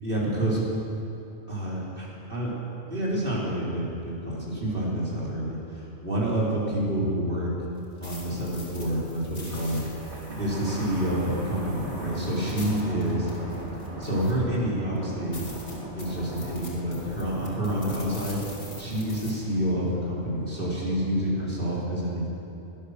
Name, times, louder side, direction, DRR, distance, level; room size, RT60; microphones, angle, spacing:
voice 1, 0.0-0.6 1.5-2.5 2.9-7.5 8.0-9.8 10.4-13.3 14.0-15.5 15.9-18.4 18.8-22.3, right 1 dB, 45° right, -6 dB, 3.9 m, -28 dB
sound 1, 7.8-14.5 15.0-15.1 15.3-19.3, left 1 dB, 50° left, 3.0 m, -45 dB
Thunder, 9.4-21.1, right 1 dB, 65° right, 3.0 m, -39 dB
18.0 x 12.0 x 6.5 m, 2.8 s
omnidirectional pair, 1.2 m